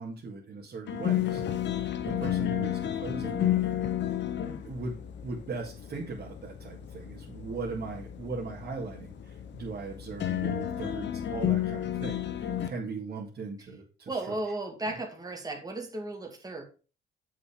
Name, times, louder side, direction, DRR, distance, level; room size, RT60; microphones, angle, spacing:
voice 1, 0.0-3.6 4.6-14.3 14.8-14.9, right 3 dB, 50° right, -2 dB, 2.3 m, -39 dB
sound 1, 0.9-12.7, left 11 dB, 65° left, 1.0 m, -32 dB
voice 2, 14.1-16.6, right 2 dB, 20° right, 1 dB, 2.3 m, -35 dB
7.6 x 5.8 x 5.0 m, 0.35 s
cardioid pair, 90°, 20 cm